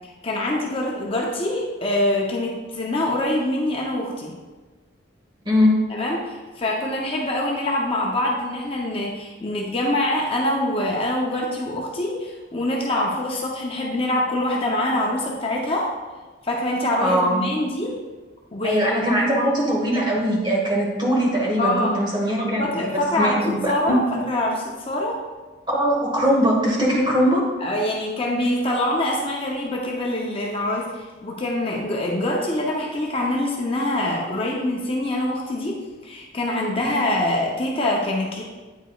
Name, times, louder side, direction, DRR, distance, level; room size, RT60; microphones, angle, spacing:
voice 1, 0.2-4.4 5.9-16.0 16.4-18.0 18.5-19.1 21.6-22.0 22.4-25.2 27.6-38.4, left 1 dB, 30° left, -1 dB, 0.6 m, -25 dB
voice 2, 5.4-5.8 17.0-17.5 18.6-24.0 25.7-27.4 36.8-37.0, equal, 25° right, -3 dB, 1.4 m, -21 dB
8.9 x 4.7 x 2.3 m, 1.3 s
head